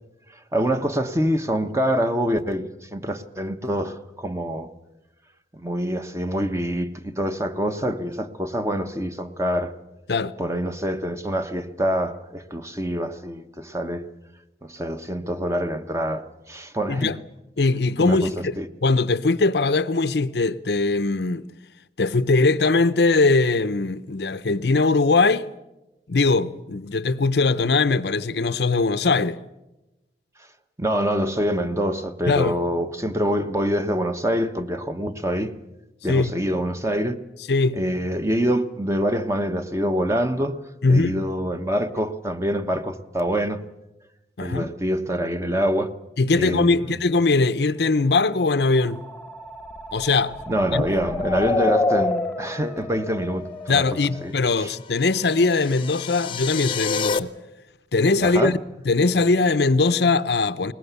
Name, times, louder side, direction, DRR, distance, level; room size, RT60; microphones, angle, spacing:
voice 1, 0.5-4.7 5.5-9.7 10.4-14.1 14.6-17.1 18.0-18.7 30.8-35.5 36.0-37.2 37.7-40.6 40.9-43.6 44.4-45.9 46.3-47.0 50.5-53.8 54.2-54.7 58.2-58.6, equal, 15° right, 1.1 m, -25 dB
voice 2, 17.6-18.5 18.8-21.5 22.0-25.5 26.1-29.4 32.3-32.5 36.1-36.3 37.5-37.8 40.8-41.3 44.4-44.7 46.2-49.0 49.9-50.3 50.7-50.8 53.7-57.3 57.9-58.6 58.9-60.7, left 3 dB, 60° left, 0.7 m, -21 dB
sound 1, 48.5-54.3, left 2 dB, 10° left, 1.1 m, -28 dB
sound 2, 54.6-57.2, left 6 dB, 30° left, 0.8 m, -29 dB
22.0 x 20.0 x 8.2 m
head